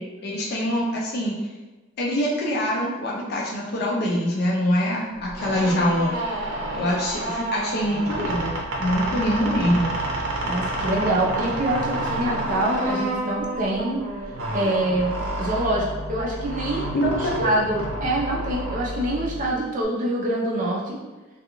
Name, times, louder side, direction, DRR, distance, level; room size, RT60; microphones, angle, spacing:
voice 1, 0.0-1.4 2.0-6.2 6.7-8.5 8.8-9.9 16.9-17.5, equal, 50° left, -3 dB, 0.4 m, -24 dB
sound 1, 5.2-19.8, right 1 dB, 85° right, 0.6 m, -29 dB
voice 2, 10.4-14.0 14.5-15.1 15.4-21.0, right 1 dB, 40° right, -4 dB, 0.5 m, -25 dB
2.3 x 2.3 x 2.9 m, 1.2 s
head